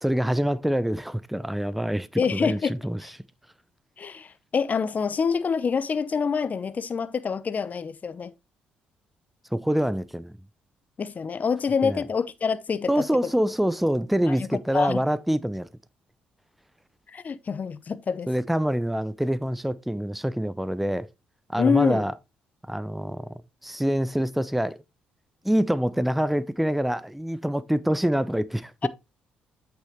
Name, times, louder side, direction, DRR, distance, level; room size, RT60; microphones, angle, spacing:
voice 1, 0.0-3.0 9.5-10.3 11.8-12.0 12.9-15.7 18.3-21.1 21.5-22.1 22.7-24.8 25.4-28.9, equal, 5° right, 0.7 m, -25 dB
voice 2, 2.2-3.1 4.0-8.3 11.0-13.3 14.3-14.5 14.7-15.0 17.1-18.3 21.6-22.0 28.8-28.9, left 6 dB, 45° left, 0.7 m, -26 dB
8.3 x 6.5 x 3.1 m
hypercardioid pair, 50°, 4 cm